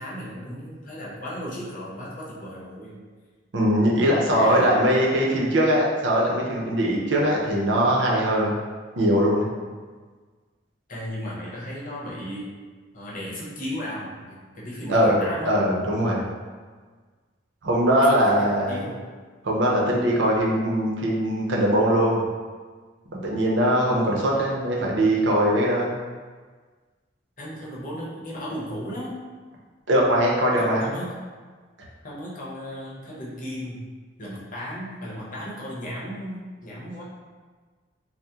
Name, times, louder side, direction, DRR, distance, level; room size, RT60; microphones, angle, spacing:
voice 1, 0.0-3.0 4.2-5.0 10.9-12.5 12.9-15.5 18.0-19.0 27.4-29.2 30.6-31.1 32.0-33.8 34.2-37.0, equal, 45° left, -6 dB, 0.8 m, -35 dB
voice 2, 3.5-8.5 9.0-9.5 14.9-16.3 17.6-18.8 19.4-22.2 23.1-26.0 29.9-30.9, equal, 90° right, -3 dB, 0.6 m, -21 dB
2.8 x 2.1 x 3.5 m, 1.5 s
head